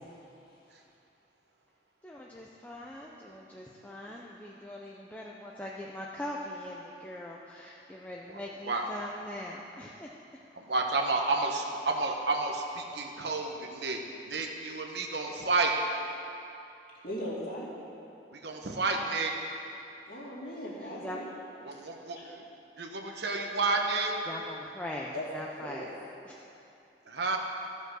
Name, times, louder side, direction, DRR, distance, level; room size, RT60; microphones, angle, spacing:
voice 1, 2.0-10.1 20.8-21.2 24.3-25.9 26.2-26.3, left 1 dB, 10° left, -3 dB, 0.5 m, -41 dB
voice 2, 10.5-14.0 14.3-15.7 18.3-19.3 21.6-22.4 22.8-24.1 27.1-27.4, right 3 dB, 65° right, 2 dB, 1.0 m, -31 dB
voice 3, 17.0-17.7 20.1-21.3 25.1-25.3 25.6-25.9, equal, 50° left, -6 dB, 2.4 m, -38 dB
14.0 x 5.3 x 6.3 m, 2.8 s
head